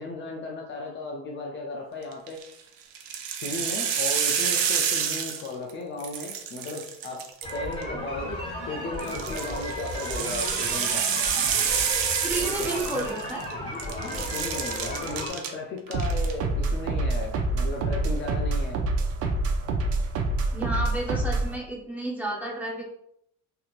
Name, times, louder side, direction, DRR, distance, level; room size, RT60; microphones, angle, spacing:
voice 1, 0.0-2.4 3.4-11.1 12.4-12.8 14.0-18.8, left 2 dB, 35° left, 0 dB, 0.4 m, -35 dB
sound 1, 2.1-2.5 2.9-5.7 6.0-7.8 9.0-13.5 13.8-15.5 15.9-16.3, right 7 dB, 90° right, 0.6 m, -28 dB
sound 2, 7.4-15.3, equal, 15° left, 1.1 m, -34 dB
voice 2, 12.2-13.4 20.5-22.9, right 1 dB, 5° right, -3 dB, 0.7 m, -31 dB
sound 3, 15.9-21.6, right 2 dB, 45° right, 0.5 m, -26 dB
3.3 x 2.8 x 2.4 m, 0.75 s
cardioid pair, 140°, 34 cm